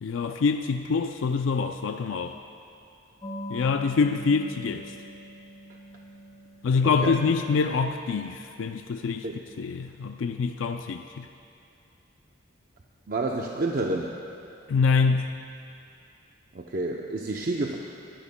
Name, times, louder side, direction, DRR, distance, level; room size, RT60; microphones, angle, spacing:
voice 1, 0.0-2.4 3.5-4.9 6.6-9.3 9.6-11.3 14.7-15.4, left 5 dB, 90° left, 7 dB, 0.4 m, -25 dB
sound 1, 3.2-9.4, equal, 20° left, 0.8 m, -44 dB
voice 2, 13.1-14.2 16.5-17.8, right 2 dB, 50° right, 0 dB, 0.6 m, -29 dB
23.0 x 12.5 x 2.2 m, 2.6 s
head